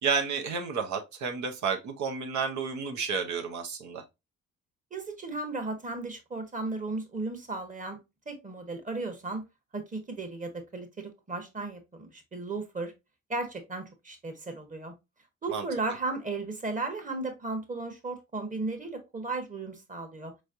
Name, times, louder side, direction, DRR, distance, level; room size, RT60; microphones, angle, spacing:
voice 1, 0.0-4.0 15.5-15.6, right 5 dB, 70° right, 0.9 m, -31 dB
voice 2, 4.9-8.0 8.3-9.4 9.7-12.9 13.3-14.9 15.4-20.3, right 3 dB, 25° right, 1.2 m, -35 dB
4.6 x 3.1 x 2.6 m
cardioid pair, 90°, 30 cm